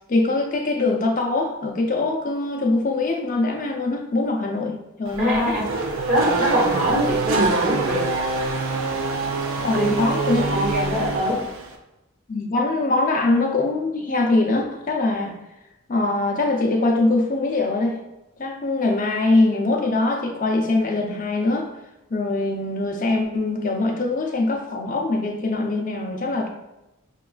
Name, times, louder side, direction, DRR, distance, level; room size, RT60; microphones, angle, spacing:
voice 1, 0.1-5.6 9.6-10.7 12.3-15.4 15.9-18.0 18.4-21.7 22.1-26.5, left 2 dB, 40° left, 2 dB, 0.5 m, -22 dB
Race car auto racing / Accelerating revving vroom, 5.0-11.7, right 3 dB, 80° right, 0.5 m, -25 dB
voice 2, 5.2-5.6 6.1-8.1 9.7-11.4, equal, 35° right, -6 dB, 1.1 m, -23 dB
5.8 x 2.3 x 2.3 m, 0.95 s
head